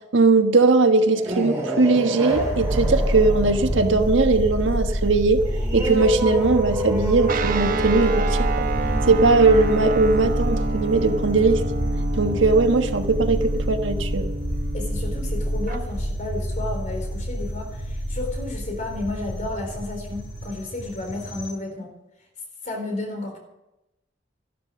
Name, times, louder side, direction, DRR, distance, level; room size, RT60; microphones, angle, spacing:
voice 1, 0.1-5.4 5.7-8.7 9.1-11.6 12.1-14.3, right 3 dB, 90° right, 6 dB, 1.3 m, -19 dB
sound 1, 1.0-12.2, right 1 dB, 15° right, 5.7 m, -30 dB
sound 2, 2.3-21.5, equal, 75° left, 3.8 m, -27 dB
Guitar, 7.3-15.8, right 3 dB, 50° right, 0.9 m, -30 dB
voice 2, 14.7-21.9 22.6-23.4, left 2 dB, 40° left, 3 dB, 4.1 m, -32 dB
12.5 x 12.5 x 6.6 m, 0.91 s
head